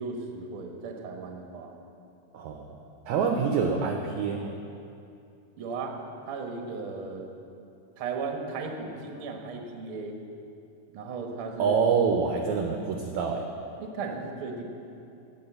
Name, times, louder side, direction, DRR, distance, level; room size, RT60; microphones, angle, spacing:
voice 1, 0.0-1.7 5.6-5.9 6.3-7.3 8.0-10.2 10.9-11.8 13.8-14.6, right 4 dB, 55° right, 2 dB, 1.5 m, -36 dB
voice 2, 2.3-2.7 3.1-4.6 11.6-13.5, right 5 dB, 75° right, 3 dB, 1.8 m, -26 dB
16.0 x 6.4 x 8.0 m, 2.7 s
omnidirectional pair, 4.0 m